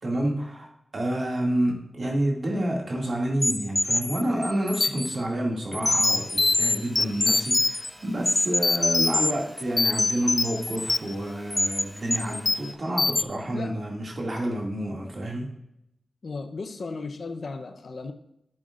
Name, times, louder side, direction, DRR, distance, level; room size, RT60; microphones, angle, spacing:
voice 1, 0.0-15.6, right 1 dB, 65° right, -1 dB, 2.2 m, -29 dB
sound 1, 3.4-5.2 5.7-7.9 8.3-9.3 9.6-11.1 11.5-11.8 12.1-12.7 13.0-13.2, left 2 dB, 40° left, 0.4 m, -24 dB
sound 2, 5.8-12.7, equal, 15° right, 2.7 m, -50 dB
voice 2, 16.2-18.1, left 3 dB, 70° left, 7 dB, 0.7 m, -35 dB
11.5 x 7.6 x 2.5 m, 0.82 s
cardioid pair, 50°, 0 cm